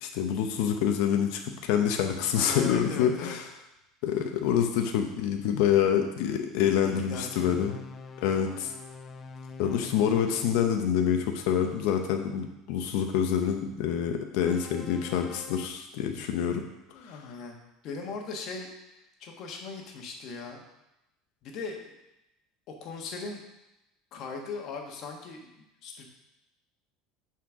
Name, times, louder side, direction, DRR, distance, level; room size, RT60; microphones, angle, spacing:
voice 1, 0.0-3.4 4.0-7.7 8.2-8.7 9.6-16.6 17.0-17.2, left 8 dB, 70° left, 5 dB, 0.8 m, -26 dB
voice 2, 2.3-3.4 6.6-7.5 16.9-20.6 21.4-21.9 22.7-23.4 24.1-26.1, left 4 dB, 50° left, 2 dB, 1.4 m, -39 dB
sound 1, 7.1-10.6 14.4-15.7, left 4 dB, 25° left, 0.5 m, -44 dB
6.0 x 4.4 x 6.2 m, 0.91 s
cardioid pair, 145°, 0 cm